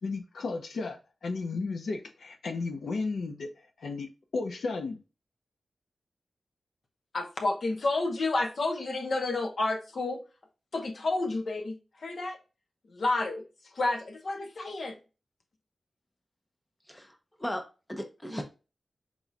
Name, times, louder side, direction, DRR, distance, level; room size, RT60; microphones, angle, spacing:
voice 1, 0.0-3.5 3.8-4.1 4.3-5.0, left 3 dB, 85° left, 0.7 m, -33 dB
voice 2, 7.1-10.2 10.7-12.4 12.9-13.4 13.7-15.0, left 2 dB, 65° left, 1.0 m, -30 dB
voice 3, 16.9-17.6 17.9-18.4, equal, 10° left, 0.7 m, -36 dB
4.6 x 4.1 x 2.3 m
wide cardioid pair, 105°, 0 cm